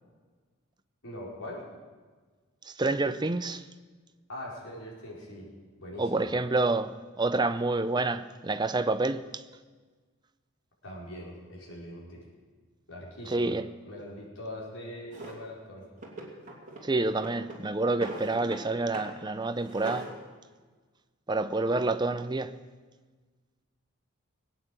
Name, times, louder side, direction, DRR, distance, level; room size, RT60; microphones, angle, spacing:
voice 1, 1.0-1.6 4.3-5.5 5.8-6.3 10.8-12.2 12.9-13.6 13.8-15.9, left 1 dB, 75° left, 5.0 m, -42 dB
voice 2, 2.8-3.6 6.0-9.4 13.3-13.6 16.8-20.1 21.3-22.5, right 2 dB, 20° right, 0.5 m, -28 dB
Drawer open or close, 15.1-15.4 16.0-16.9 17.2-18.7 18.9-19.2 19.5-20.1, right 2 dB, 40° right, 2.7 m, -41 dB
19.5 x 8.9 x 7.7 m
head